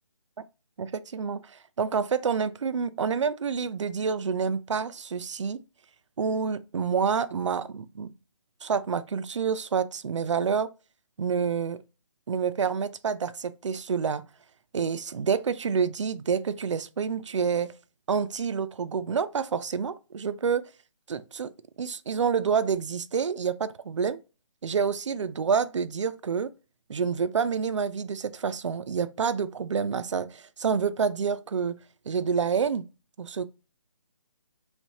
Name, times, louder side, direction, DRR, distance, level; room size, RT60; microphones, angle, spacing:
voice 1, 0.8-5.6 6.2-8.1 8.6-10.7 11.2-11.8 12.3-14.3 14.7-17.7 18.1-20.7 21.1-21.5 21.8-24.2 24.6-26.5 26.9-31.8 32.1-32.8 33.2-33.4, right 6 dB, 70° right, 0.5 m, -28 dB
3.2 x 3.2 x 4.0 m
hypercardioid pair, 165°, 16 cm